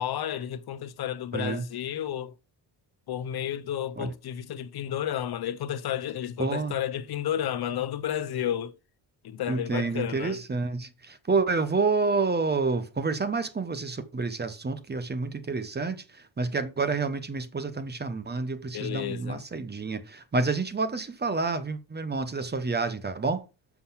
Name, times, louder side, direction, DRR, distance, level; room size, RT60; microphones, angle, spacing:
voice 1, 0.0-2.3 3.1-8.8 9.2-10.4 18.7-19.4, left 10 dB, 55° left, 0.8 m, -32 dB
voice 2, 1.3-1.6 4.0-4.1 6.4-6.7 9.5-23.5, right 4 dB, 20° right, 1.0 m, -29 dB
7.0 x 6.0 x 5.7 m
cardioid pair, 120°, 44 cm